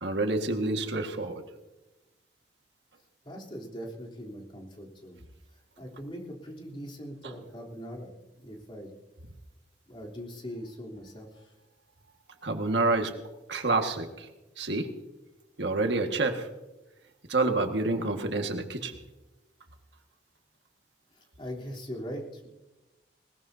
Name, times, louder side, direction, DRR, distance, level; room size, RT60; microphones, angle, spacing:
voice 1, 0.0-1.4 12.4-13.1 13.5-14.3 14.6-14.9 15.6-16.5 17.3-19.0, right 2 dB, 80° right, 5 dB, 1.8 m, -28 dB
voice 2, 3.2-5.2 5.8-8.9 9.9-11.5 21.1-22.5, equal, 30° left, -2 dB, 3.5 m, -41 dB
20.5 x 20.5 x 2.8 m, 1.0 s
head